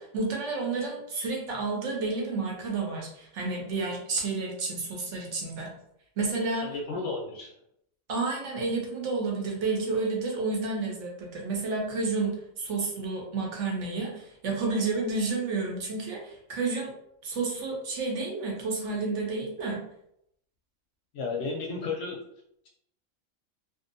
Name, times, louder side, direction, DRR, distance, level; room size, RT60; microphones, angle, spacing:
voice 1, 0.0-5.7 6.2-6.7 8.1-16.9 17.2-19.8, right 3 dB, 65° right, -1 dB, 0.9 m, -30 dB
voice 2, 6.6-7.5 21.1-22.2, left 4 dB, 65° left, 0 dB, 0.8 m, -33 dB
2.6 x 2.1 x 2.6 m, 0.74 s
omnidirectional pair, 1.4 m